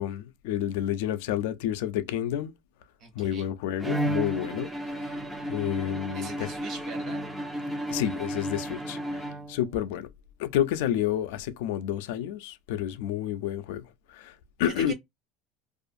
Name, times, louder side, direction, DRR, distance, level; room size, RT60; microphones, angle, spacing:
voice 1, 0.0-2.5 3.1-4.7 5.1-5.2 5.5-6.5 7.9-10.1 10.4-13.8 14.1-14.9, left 11 dB, 75° left, 0.4 m, -30 dB
voice 2, 3.0-3.5 5.0-5.2 6.1-7.3 14.6-14.9, right 5 dB, 35° right, 0.8 m, -42 dB
Bowed string instrument, 3.8-9.8, equal, 5° right, 0.4 m, -33 dB
2.4 x 2.4 x 2.5 m
cardioid pair, 175°, 0 cm